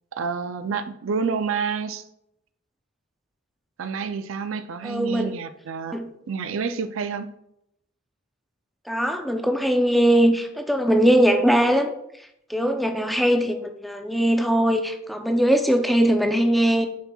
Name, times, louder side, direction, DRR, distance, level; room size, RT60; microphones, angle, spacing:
voice 1, 0.1-2.0 3.8-6.0 6.3-7.3, right 5 dB, 85° right, 0.4 m, -28 dB
voice 2, 4.8-5.4 5.9-6.1 8.9-11.9 12.5-16.9, equal, ahead, 0.4 m, -20 dB
10.0 x 4.4 x 2.3 m
head